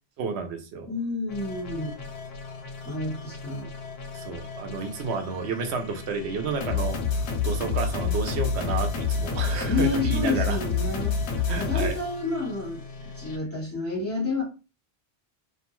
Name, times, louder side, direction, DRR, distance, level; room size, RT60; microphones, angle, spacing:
voice 1, 0.2-0.9 4.1-7.0 7.4-10.6 11.5-11.9, right 5 dB, 85° right, 5 dB, 0.9 m, -31 dB
voice 2, 0.9-2.0 2.8-3.7 9.7-11.2 11.5-12.8 13.2-14.4, left 3 dB, 15° left, -5 dB, 1.1 m, -29 dB
sound 1, 1.3-13.4, left 5 dB, 75° left, 0.8 m, -30 dB
2.4 x 2.2 x 2.9 m, 0.32 s
omnidirectional pair, 1.1 m